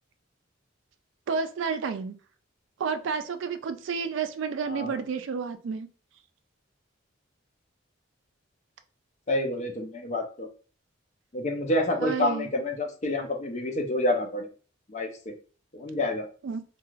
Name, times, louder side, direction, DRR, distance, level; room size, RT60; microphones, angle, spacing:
voice 1, 1.3-2.2 2.8-5.9 12.0-12.5 16.4-16.6, right 5 dB, 65° right, 0.3 m, -30 dB
voice 2, 4.7-5.0 9.3-10.5 11.3-14.5 14.9-15.3 15.7-16.3, left 1 dB, 35° left, 0.5 m, -28 dB
2.4 x 2.3 x 3.1 m
head